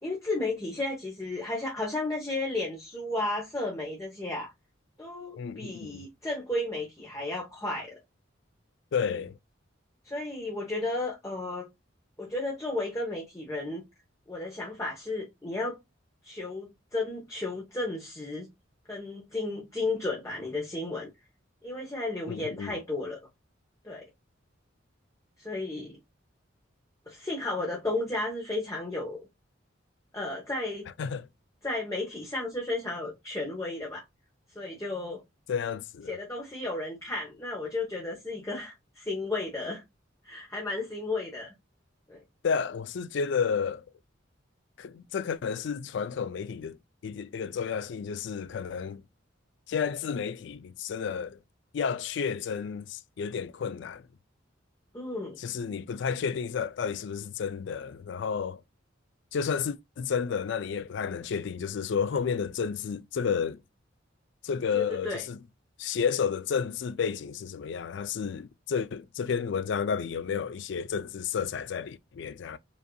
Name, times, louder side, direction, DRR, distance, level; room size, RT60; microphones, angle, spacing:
voice 1, 0.0-4.5 5.0-8.0 10.0-11.7 12.2-13.8 14.3-15.8 16.2-18.5 18.9-21.1 21.6-23.2 23.8-24.1 25.4-26.0 27.1-29.2 30.1-30.9 31.6-34.0 34.5-35.2 36.1-39.8 40.2-41.5 42.1-42.2 54.9-55.4 64.7-65.2, left 2 dB, 15° left, 0.9 m, -33 dB
voice 2, 5.4-6.0 8.9-9.4 22.3-22.8 31.0-31.3 35.5-36.2 42.4-43.8 44.8-46.8 47.0-49.0 49.7-51.4 51.7-54.1 55.4-58.6 59.3-63.6 64.4-65.4 65.8-72.6, left 6 dB, 60° left, 0.3 m, -31 dB
5.1 x 2.7 x 2.2 m
head